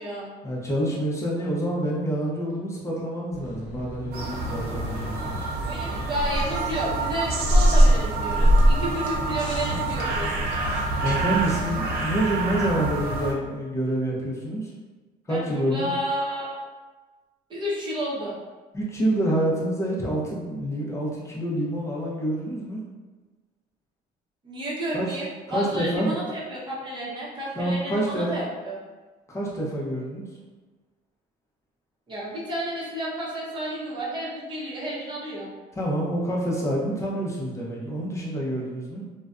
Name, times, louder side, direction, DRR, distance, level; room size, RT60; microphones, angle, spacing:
voice 1, 0.4-5.5 11.0-14.7 15.3-15.9 18.7-22.8 24.9-25.1 25.5-26.2 27.6-28.4 29.3-30.3 35.7-39.0, right 1 dB, 15° left, -4 dB, 0.6 m, -27 dB
sound 1, 3.3-11.6, equal, 50° left, 0.8 m, -24 dB
sound 2, 4.1-13.3, right 3 dB, 70° right, 0.5 m, -29 dB
voice 2, 5.7-10.3 15.3-16.6 17.5-18.3 24.4-28.8 32.1-35.5, equal, 30° right, -6 dB, 0.8 m, -31 dB
2.4 x 2.1 x 2.4 m, 1.3 s
cardioid pair, 110°, 17 cm